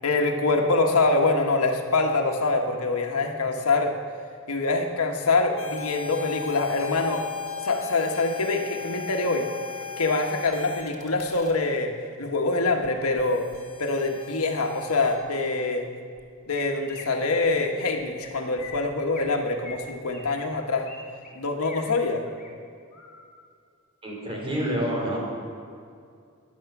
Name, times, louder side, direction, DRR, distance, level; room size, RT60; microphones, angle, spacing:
voice 1, 0.0-3.9 4.5-7.2 7.6-9.5 10.0-11.9 12.2-13.5 13.8-15.9 16.5-20.9 21.3-22.2, left 3 dB, 85° left, 3 dB, 1.4 m, -25 dB
sound 1, 5.6-11.5 12.8-12.9 13.2-15.2, left 5 dB, 70° left, 1.9 m, -37 dB
Chirp tweet, 16.2-16.3 16.6-17.0 17.4-17.6 17.9-18.3 18.6-19.3 19.6-21.0 21.2-21.8 22.2-22.5 22.9-23.3, left 4 dB, 45° left, 3.2 m, -43 dB
voice 2, 24.0-25.2, equal, 25° right, -3 dB, 4.5 m, -28 dB
16.5 x 11.0 x 6.0 m, 2.3 s
head